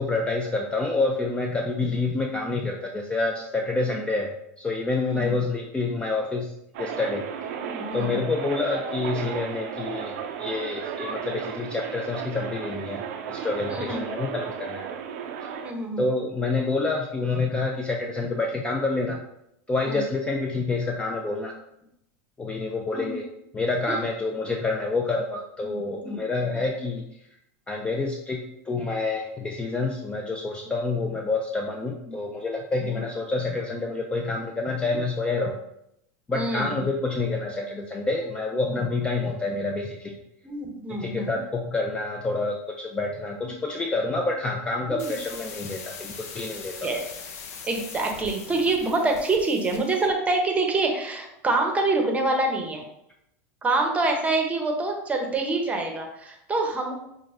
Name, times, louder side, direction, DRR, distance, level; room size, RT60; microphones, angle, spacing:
voice 1, 0.0-4.3 4.6-6.5 6.8-7.2 7.9-14.8 16.0-19.2 19.7-21.5 22.4-23.2 23.5-27.0 27.7-35.6 36.3-40.2 40.9-46.9, left 3 dB, 15° left, 1 dB, 0.3 m, -28 dB
voice 2, 5.1-5.4 7.5-8.2 13.7-14.1 15.6-16.1 19.8-20.0 22.9-23.2 23.9-24.0 25.6-26.6 32.0-32.2 32.8-33.0 34.9-35.0 36.3-36.9 38.7-38.8 40.4-41.4 43.4-43.5 44.9-45.1 46.8-47.0 47.6-52.8 53.6-57.0, right 2 dB, 15° right, 2 dB, 0.7 m, -27 dB
sound 1, 6.7-15.7, right 7 dB, 65° right, 0.4 m, -34 dB
sound 2, 45.0-50.1, left 6 dB, 80° left, 0.5 m, -41 dB
5.9 x 2.1 x 2.5 m, 0.79 s
supercardioid pair, 120°, 8 cm